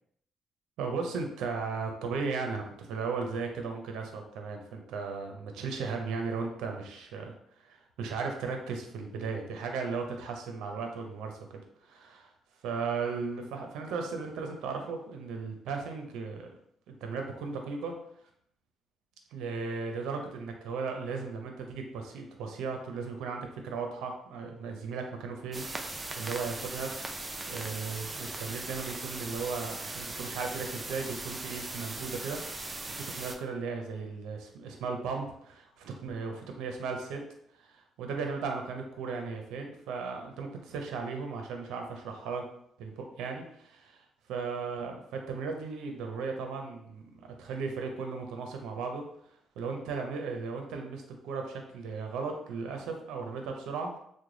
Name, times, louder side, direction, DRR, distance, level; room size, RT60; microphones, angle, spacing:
voice 1, 0.8-12.3 12.6-16.5 16.9-18.0 19.3-26.9 27.4-32.4 32.9-37.2 37.5-42.5 42.8-49.0 49.6-53.9, right 4 dB, 90° right, 3 dB, 0.5 m, -36 dB
sound 1, 25.5-33.3, right 2 dB, 25° right, 0.4 m, -39 dB
3.1 x 2.1 x 3.8 m, 0.69 s
cardioid pair, 90°, 0 cm